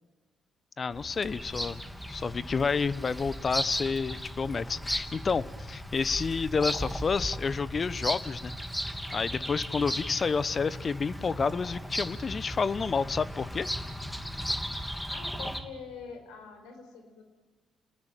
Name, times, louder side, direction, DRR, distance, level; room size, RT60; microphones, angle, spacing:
voice 1, 0.8-1.8 2.1-8.5 9.1-13.7, left 5 dB, 45° left, 17 dB, 1.0 m, -29 dB
Bird vocalization bird call bird song, 0.9-15.6, equal, 10° left, 3.0 m, -36 dB
voice 2, 15.1-17.2, left 5 dB, 75° left, 6 dB, 4.8 m, -44 dB
29.5 x 19.5 x 9.2 m, 1.4 s
hypercardioid pair, 45°, 0 cm